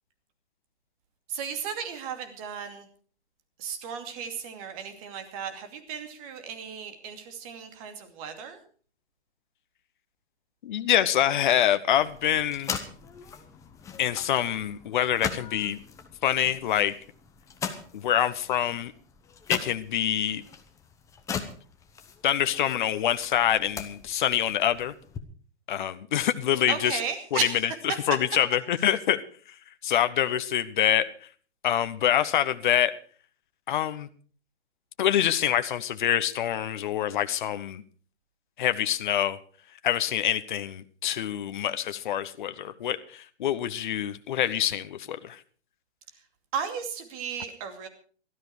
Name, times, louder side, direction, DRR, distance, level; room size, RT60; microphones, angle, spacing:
voice 1, 1.3-2.9 3.6-8.6 26.7-27.6 46.5-47.9, right 7 dB, 30° right, 7 dB, 2.6 m, -35 dB
voice 2, 10.6-12.8 14.0-15.8 16.2-16.9 17.9-18.9 19.5-20.4 22.2-24.9 25.7-27.0 27.3-29.2 29.8-31.1 31.6-32.9 33.7-34.1 35.0-37.8 38.6-39.4 39.8-45.4, left 11 dB, 45° left, 11 dB, 1.0 m, -25 dB
sound 1, 11.9-25.2, left 6 dB, 10° left, 1.0 m, -40 dB
17.5 x 13.0 x 4.8 m, 0.43 s
figure-of-eight pair, 135°, 33 cm